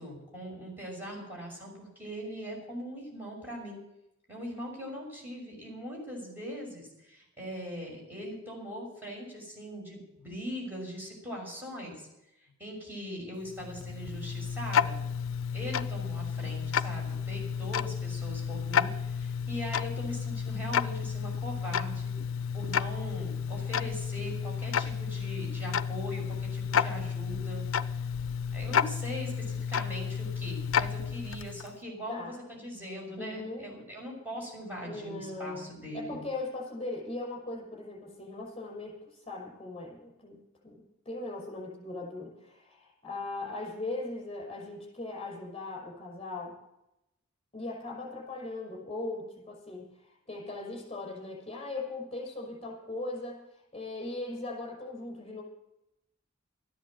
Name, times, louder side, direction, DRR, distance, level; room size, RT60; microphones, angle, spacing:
voice 1, 0.0-3.8 4.3-12.1 12.6-15.0 15.5-22.1 22.5-28.0 28.5-36.2, equal, 10° right, -2 dB, 6.3 m, -41 dB
Tick-tock, 13.4-31.8, left 7 dB, 70° left, 0.5 m, -32 dB
voice 2, 33.2-33.7 34.8-46.6 47.5-53.4 53.7-55.4, left 2 dB, 30° left, -2 dB, 5.8 m, -39 dB
13.5 x 10.5 x 7.7 m, 0.87 s
head